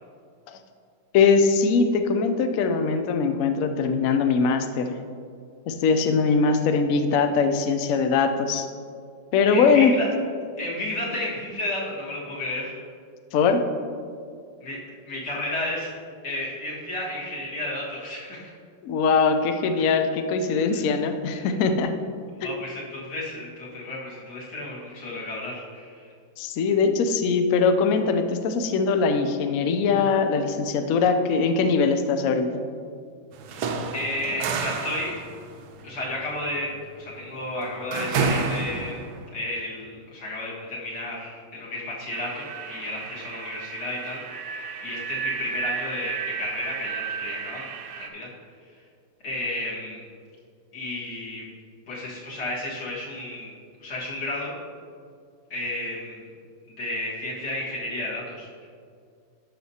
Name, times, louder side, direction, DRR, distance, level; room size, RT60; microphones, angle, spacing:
voice 1, 1.1-4.9 5.7-8.7 9.3-9.9 13.3-13.6 18.8-21.9 22.4-22.5 26.4-32.5, left 5 dB, 90° left, 7 dB, 0.7 m, -21 dB
voice 2, 9.5-10.1 10.6-12.7 14.6-14.8 15.1-15.9 16.2-18.5 19.8-19.9 20.7-20.8 21.4-21.5 22.4-26.1 33.9-35.1 35.8-39.1 39.3-48.3 49.2-50.0 50.7-51.4 51.9-53.5 53.8-54.5 55.5-56.3 56.7-58.7, left 1 dB, 60° left, -6 dB, 2.3 m, -32 dB
sound 1, 33.3-39.3, right 4 dB, 70° right, 1.0 m, -29 dB
sound 2, 42.1-48.1, right 7 dB, 90° right, 1.5 m, -34 dB
12.0 x 6.0 x 2.8 m, 2.3 s
omnidirectional pair, 2.1 m